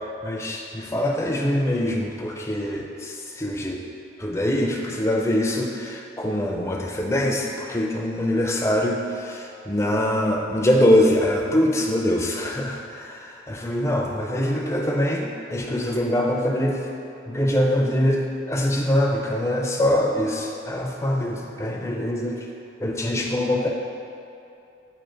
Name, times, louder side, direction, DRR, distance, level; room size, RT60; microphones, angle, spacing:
voice 1, 0.2-3.8 4.2-16.9 17.3-22.5 22.8-23.7, left 1 dB, 15° left, -1 dB, 0.5 m, -23 dB
7.8 x 2.9 x 4.3 m, 2.7 s
head